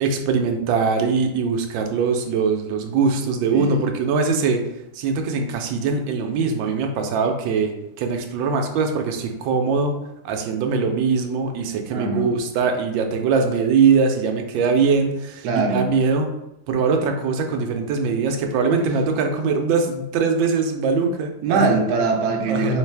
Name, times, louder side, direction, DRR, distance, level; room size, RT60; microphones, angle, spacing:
voice 1, 0.0-4.6 4.9-10.0 10.2-16.3 16.7-21.6 22.5-22.7, right 5 dB, 90° right, 4 dB, 1.3 m, -22 dB
voice 2, 3.5-3.8 11.9-12.4 15.4-16.0 21.4-22.8, right 4 dB, 70° right, 3 dB, 1.0 m, -22 dB
3.2 x 3.2 x 3.3 m, 0.87 s
omnidirectional pair, 2.0 m